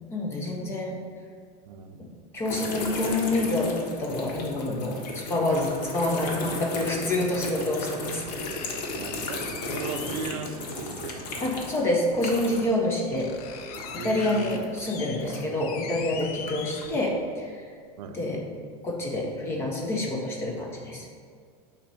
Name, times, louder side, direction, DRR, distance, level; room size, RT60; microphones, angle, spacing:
voice 1, 0.1-1.0 2.0-2.1 2.3-8.2 8.7-8.9 11.4-13.3 13.9-17.6 18.1-18.4 18.8-21.1, left 1 dB, 10° left, -1 dB, 0.4 m, -27 dB
voice 2, 1.7-2.2 5.5-5.6 8.9-11.4 14.0-14.6 16.4-16.5 18.0-18.2, right 6 dB, 60° right, 6 dB, 0.5 m, -38 dB
sound 1, 2.4-12.8 13.1-15.6 16.1-16.9, left 2 dB, 85° left, 1.2 m, -35 dB
sound 2, 8.1-10.5 11.8-11.9 12.6-12.7 12.9-17.3 17.8-17.9, left 7 dB, 65° left, 0.6 m, -41 dB
7.1 x 2.7 x 5.5 m, 2.1 s
supercardioid pair, 180°, 21 cm